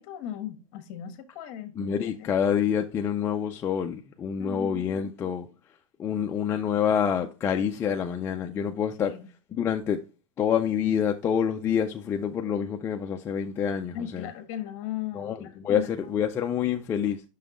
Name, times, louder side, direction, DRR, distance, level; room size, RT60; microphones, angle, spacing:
voice 1, 0.0-2.3 4.4-4.9 9.0-9.3 13.9-15.9, left 10 dB, 45° left, 1.3 m, -37 dB
voice 2, 1.8-5.5 6.0-9.1 9.5-10.0 10.4-14.3 15.1-17.2, left 8 dB, 15° left, 0.3 m, -27 dB
5.8 x 5.5 x 3.6 m
supercardioid pair, 160°, 17 cm